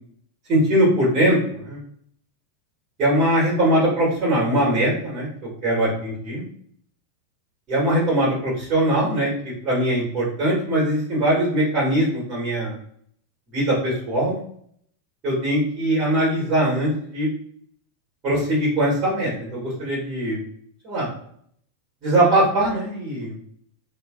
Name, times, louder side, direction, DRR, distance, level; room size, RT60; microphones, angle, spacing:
voice 1, 0.5-1.8 3.0-5.3 5.6-6.4 7.7-9.3 9.6-12.7 13.5-14.4 15.2-17.3 18.2-20.4 20.8-21.1 22.0-23.3, right 1 dB, 35° right, -5 dB, 1.5 m, -21 dB
3.1 x 2.7 x 2.4 m, 0.65 s
figure-of-eight pair, 90°, 0 cm